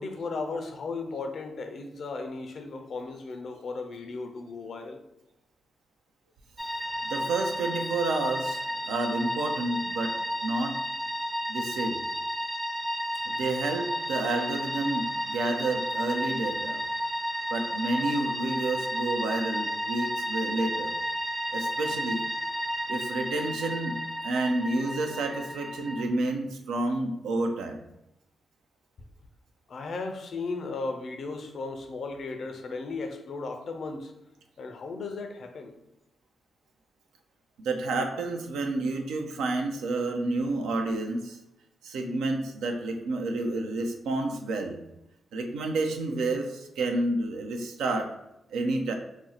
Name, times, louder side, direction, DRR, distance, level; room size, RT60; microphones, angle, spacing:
voice 1, 0.0-5.0 29.7-34.1 34.6-35.7, left 3 dB, 65° left, 5 dB, 0.4 m, -36 dB
sound 1, 6.6-26.1, equal, 15° right, 0.5 m, -32 dB
voice 2, 7.0-10.1 10.4-10.8 11.5-12.0 13.2-16.8 17.5-20.9 21.5-22.2 22.9-24.0 24.2-27.8 37.6-41.4 41.8-44.8 45.3-48.1 48.5-48.9, right 2 dB, 80° right, 4 dB, 0.4 m, -30 dB
2.6 x 2.0 x 3.9 m, 0.87 s
supercardioid pair, 45°, 0 cm